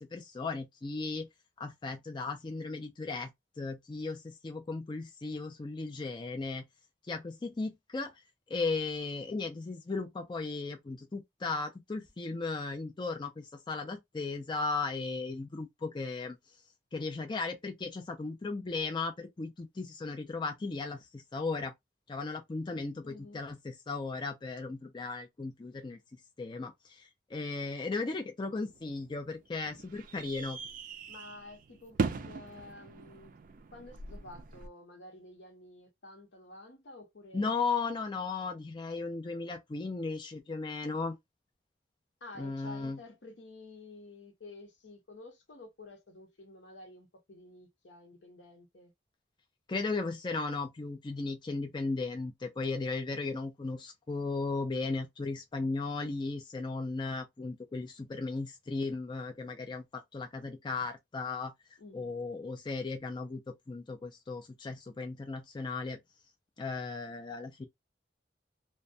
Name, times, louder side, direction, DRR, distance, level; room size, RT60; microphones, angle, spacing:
voice 1, 0.1-1.3 1.6-3.3 3.6-6.6 7.1-8.1 8.5-16.4 16.9-21.7 22.1-26.0 26.4-30.6 37.3-41.2 42.4-43.0 49.7-61.5 61.9-66.0 66.6-67.7, left 3 dB, 25° left, 0.4 m, -36 dB
voice 2, 23.0-23.4 31.1-33.4 33.7-37.6 42.2-48.9 61.8-62.1, left 2 dB, 75° left, 0.8 m, -51 dB
sound 1, 28.7-34.7, right 4 dB, 50° right, 0.3 m, -39 dB
2.2 x 2.2 x 2.6 m
head